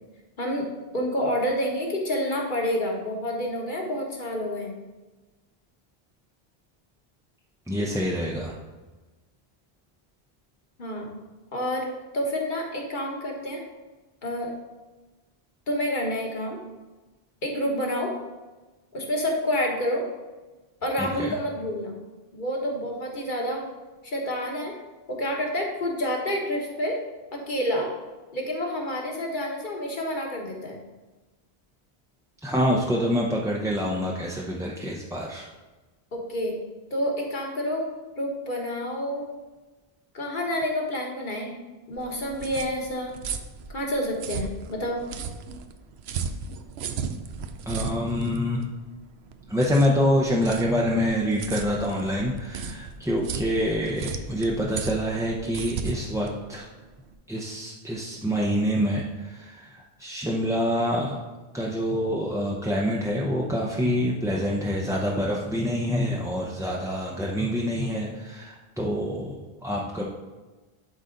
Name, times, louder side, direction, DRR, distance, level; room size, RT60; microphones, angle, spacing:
voice 1, 0.9-4.7 10.8-11.1 11.5-11.9 12.1-13.6 14.2-14.5 15.7-16.6 17.4-18.2 18.9-20.0 20.8-21.9 22.3-23.7 24.0-24.7 25.1-27.0 27.3-27.9 28.3-30.8 36.1-36.6 36.9-37.9 38.2-39.2 40.1-41.6 41.9-43.2 43.7-45.0, equal, 50° left, 0 dB, 1.5 m, -28 dB
voice 2, 7.7-8.6 21.0-21.4 32.4-35.4 47.7-48.7 49.5-56.7 57.3-61.2 61.5-70.1, equal, 5° right, -3 dB, 0.6 m, -26 dB
sound 1, 41.9-57.1, right 6 dB, 85° right, 0.9 m, -36 dB
12.0 x 4.0 x 3.9 m, 1.2 s
omnidirectional pair, 1.1 m